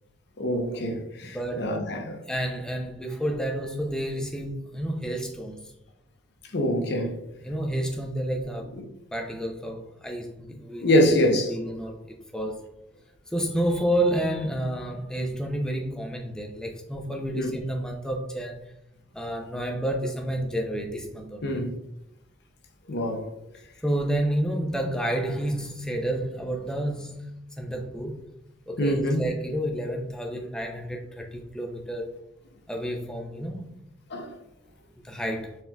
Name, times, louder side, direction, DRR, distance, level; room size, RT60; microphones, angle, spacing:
voice 1, 0.4-2.2 6.5-7.1 10.8-11.5 17.3-17.5 21.4-21.7 22.9-23.3 28.8-29.2 34.1-34.3, equal, 55° left, 0.7 m, -24 dB
voice 2, 1.2-1.7 2.3-5.7 7.4-8.7 9.1-12.0 12.3-12.7 13.3-18.7 19.1-21.6 23.8-27.3 27.6-28.2 28.7-32.1 32.7-33.7 35.0-35.6, right 1 dB, 5° left, 0.5 m, -30 dB
4.3 x 3.6 x 2.3 m
head